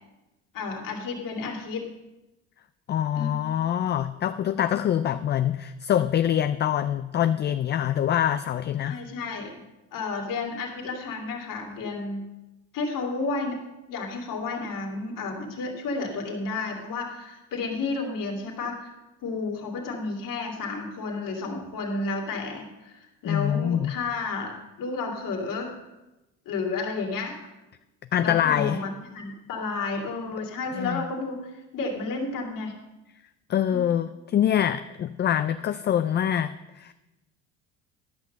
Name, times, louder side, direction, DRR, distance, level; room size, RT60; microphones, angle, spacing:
voice 1, 0.5-1.9 3.1-3.3 8.9-9.6 9.9-12.2 12.7-13.6 13.9-19.0 19.2-25.7 26.5-27.4 28.2-32.7 33.7-33.8, left 3 dB, 60° left, 2 dB, 2.3 m, -32 dB
voice 2, 2.9-9.0 23.3-23.9 28.1-28.8 30.7-31.0 33.5-36.9, left 10 dB, 30° left, 11 dB, 0.4 m, -25 dB
12.0 x 6.0 x 6.4 m, 1.0 s
supercardioid pair, 85°, 36 cm